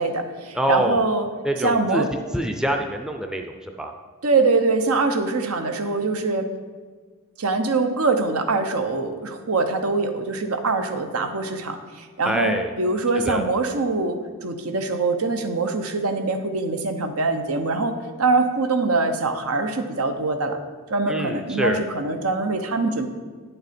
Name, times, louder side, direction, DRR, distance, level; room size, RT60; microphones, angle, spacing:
voice 1, 0.0-1.3 1.6-2.1 4.2-6.5 7.4-20.6 20.9-23.1, right 3 dB, 90° right, 7 dB, 0.9 m, -23 dB
voice 2, 0.5-1.0 1.4-2.0 2.3-3.9 12.2-12.7 13.2-13.4 21.1-21.8, equal, 5° right, 4 dB, 0.4 m, -25 dB
9.7 x 6.7 x 4.3 m, 1.5 s
head